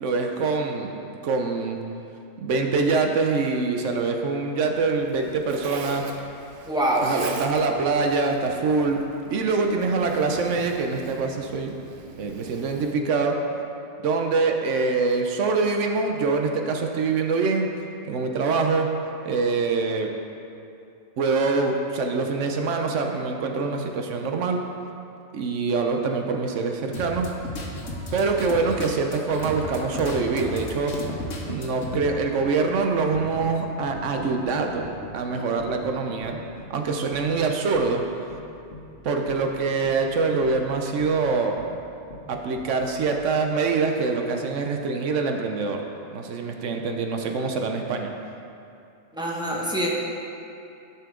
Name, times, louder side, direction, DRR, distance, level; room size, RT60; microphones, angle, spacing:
voice 1, 0.0-1.0 1.2-1.8 2.4-6.0 7.0-9.0 9.3-11.7 12.2-13.4 14.0-17.7 18.1-18.9 19.2-20.1 21.2-24.6 25.3-27.3 28.1-31.0 31.5-34.9 35.1-36.4 36.7-38.0 39.0-41.6 42.3-45.8 46.1-48.1, right 4 dB, 80° right, 3 dB, 1.1 m, -24 dB
Zipper (clothing), 4.7-12.9, right 4 dB, 55° right, 0.8 m, -41 dB
voice 2, 6.6-7.1 49.1-49.9, right 1 dB, 5° right, -3 dB, 1.0 m, -24 dB
sound 1, 26.9-31.9, left 2 dB, 85° left, 1.3 m, -35 dB
Wind chime, 27.8-44.0, left 2 dB, 65° left, 1.2 m, -42 dB
12.5 x 5.7 x 3.8 m, 2.7 s
omnidirectional pair, 1.2 m